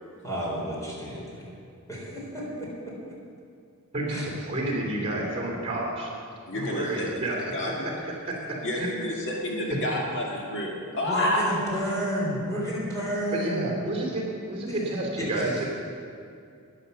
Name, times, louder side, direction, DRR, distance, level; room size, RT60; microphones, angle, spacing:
voice 1, 0.2-1.5 1.9-2.9 4.1-4.2 11.0-13.7 14.7-14.8 15.2-15.7, equal, 15° left, -5 dB, 3.9 m, -31 dB
voice 2, 3.9-6.1 6.5-7.4 7.6-7.7 8.7-8.9 9.9-10.0 13.3-15.6, right 1 dB, 30° right, -1 dB, 3.1 m, -30 dB
voice 3, 6.5-8.2 8.6-11.4, left 1 dB, 55° left, -2 dB, 1.7 m, -30 dB
11.5 x 9.9 x 7.0 m, 2.4 s
head